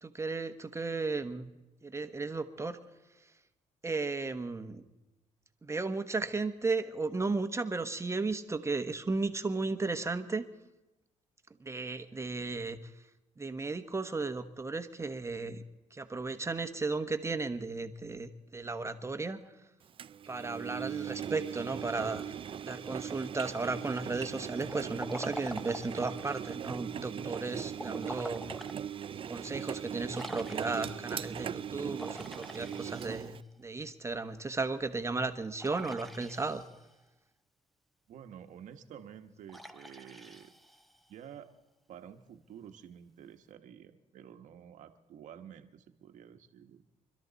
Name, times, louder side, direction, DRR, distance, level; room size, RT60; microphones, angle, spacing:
voice 1, 0.0-1.5 1.8-2.8 3.8-4.8 5.6-10.4 11.6-12.9 13.4-15.6 15.9-19.4 20.3-22.4 22.6-28.5 29.1-36.6, right 3 dB, 20° right, 8 dB, 1.3 m, -35 dB
Engine, 20.0-33.4, right 9 dB, 40° right, 0.5 m, -40 dB
Liquid, 24.7-26.3 27.7-28.8 29.3-29.4 30.1-31.1 31.9-33.6 35.6-36.9 39.5-41.1, equal, ahead, 1.0 m, -45 dB
voice 2, 38.1-40.5 41.1-41.5 41.9-46.9, right 9 dB, 70° right, 7 dB, 1.3 m, -50 dB
25.5 x 13.0 x 4.1 m, 1.0 s
cardioid pair, 80°, 13 cm